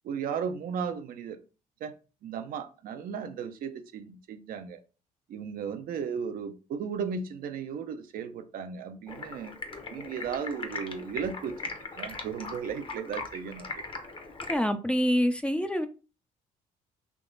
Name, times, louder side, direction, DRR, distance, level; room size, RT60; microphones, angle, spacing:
voice 1, 0.0-1.4 1.8-1.9 2.2-4.8 5.3-9.6 9.9-13.7, right 6 dB, 65° right, 7 dB, 0.6 m, -35 dB
Stream, 9.1-14.6, left 3 dB, 35° left, 1.0 m, -40 dB
voice 2, 14.5-15.9, equal, 5° left, 8 dB, 0.6 m, -26 dB
3.5 x 2.9 x 3.9 m, 0.34 s
supercardioid pair, 80°, 16 cm